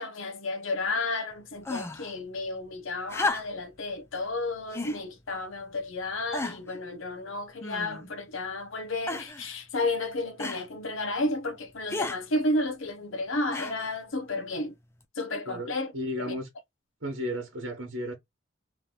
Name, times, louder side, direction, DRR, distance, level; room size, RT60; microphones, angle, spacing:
voice 1, 0.0-14.7 15.2-15.9 16.2-16.3, left 2 dB, 75° left, 0.8 m, -32 dB
sound 1, 1.6-2.1 3.1-3.7 4.7-5.0 5.7-5.8 6.3-6.8 7.6-8.1 9.1-9.5 10.4-10.7 11.9-12.2 13.5-14.0 15.0-15.1, left 2 dB, 10° left, 0.4 m, -33 dB
voice 2, 15.5-16.5 17.0-18.1, equal, 65° right, 1.2 m, -34 dB
3.3 x 2.9 x 3.8 m
head